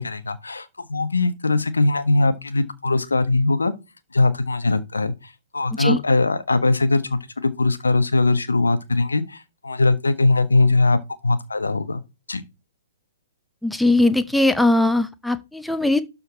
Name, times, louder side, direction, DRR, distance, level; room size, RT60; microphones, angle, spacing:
voice 1, 0.0-3.7 4.1-11.0 11.2-12.0 12.3-12.4, left 2 dB, 70° left, 1.3 m, -21 dB
voice 2, 13.6-16.0, left 2 dB, ahead, 0.7 m, -19 dB
12.5 x 4.3 x 4.3 m
figure-of-eight pair, 115°, 0 cm